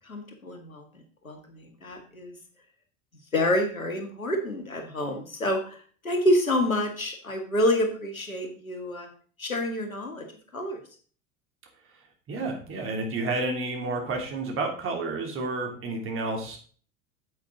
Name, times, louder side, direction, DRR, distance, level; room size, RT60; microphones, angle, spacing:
voice 1, 0.0-0.9 1.2-2.4 3.3-5.8 6.0-9.1 9.4-10.3 10.5-10.8, left 1 dB, 85° left, 4 dB, 1.9 m, -27 dB
voice 2, 12.3-16.6, right 2 dB, 30° right, 2 dB, 2.9 m, -30 dB
8.5 x 8.2 x 3.9 m, 0.42 s
figure-of-eight pair, 80°, 40 cm